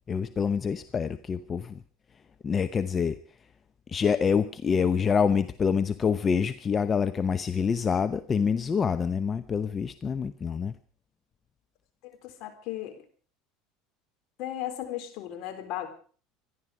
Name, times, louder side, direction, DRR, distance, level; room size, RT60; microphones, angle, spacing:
voice 1, 0.1-1.8 2.4-3.2 3.9-10.8, left 6 dB, 30° left, 11 dB, 0.8 m, -26 dB
voice 2, 12.4-12.9 14.4-15.9, left 12 dB, 60° left, 6 dB, 3.7 m, -35 dB
25.0 x 11.5 x 4.9 m, 0.43 s
hypercardioid pair, 80°, 0 cm